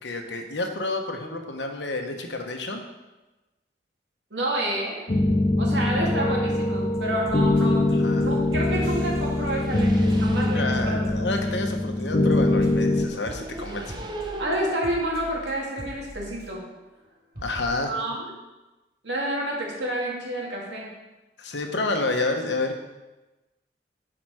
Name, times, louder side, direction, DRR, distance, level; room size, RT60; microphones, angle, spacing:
voice 1, 0.0-2.8 7.9-8.3 10.5-14.0 17.4-17.9 21.4-22.8, left 2 dB, 75° left, 4 dB, 1.1 m, -29 dB
voice 2, 4.3-5.1 5.6-11.1 14.4-16.6 17.8-18.3 19.0-20.9, right 1 dB, 75° right, -2 dB, 2.3 m, -29 dB
sound 1, 5.1-13.1, left 2 dB, 35° left, 0.6 m, -23 dB
sound 2, 6.6-14.8, right 2 dB, 25° right, 0.7 m, -41 dB
sound 3, 6.9-7.0 7.2-7.9 8.2-11.7 12.0-16.8 17.1-17.2 17.3-17.6, right 1 dB, 55° right, 3.4 m, -41 dB
11.0 x 5.1 x 4.8 m, 1.1 s
head